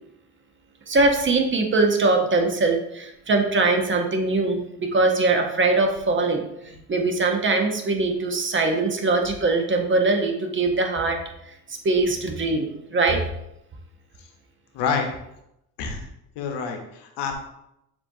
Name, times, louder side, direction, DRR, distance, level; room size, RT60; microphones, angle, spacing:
voice 1, 0.9-6.4 6.9-11.2 11.8-13.2, right 3 dB, 30° right, 4 dB, 0.7 m, -22 dB
voice 2, 14.7-15.1 15.8-16.0 16.4-17.3, left 6 dB, 80° left, 4 dB, 0.9 m, -27 dB
6.8 x 2.8 x 2.6 m, 0.83 s
supercardioid pair, 85°, 40 cm